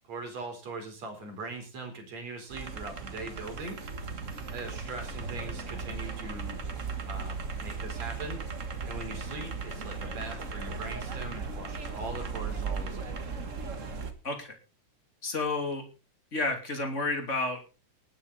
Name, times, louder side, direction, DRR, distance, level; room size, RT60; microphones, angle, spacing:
voice 1, 0.1-3.8 4.5-6.6 7.0-8.5 8.8-13.2, right 3 dB, 60° right, 4 dB, 5.2 m, -41 dB
sound 1, 2.5-14.1, right 4 dB, 40° right, 1.2 m, -37 dB
voice 2, 14.2-14.6 15.2-15.9 16.3-17.8, left 2 dB, 25° left, 4 dB, 3.0 m, -31 dB
19.0 x 9.1 x 4.1 m, 0.32 s
omnidirectional pair, 3.5 m